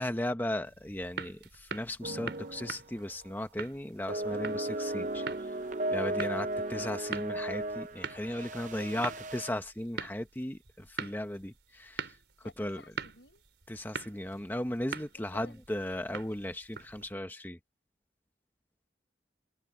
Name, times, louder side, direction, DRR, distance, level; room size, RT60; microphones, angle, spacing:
voice 1, 0.0-5.6 5.9-12.2 12.6-12.8 13.7-17.6, left 1 dB, 10° left, 1.0 m, -36 dB
sound 1, 0.6-17.1, right 5 dB, 85° right, 3.7 m, -44 dB
sound 2, 2.0-2.8 3.1-3.3 4.1-9.5, right 1 dB, 45° right, 0.7 m, -35 dB
voice 2, 6.6-6.9 8.8-9.2 12.4-13.4 15.1-15.6, left 2 dB, 85° left, 6.5 m, -54 dB
head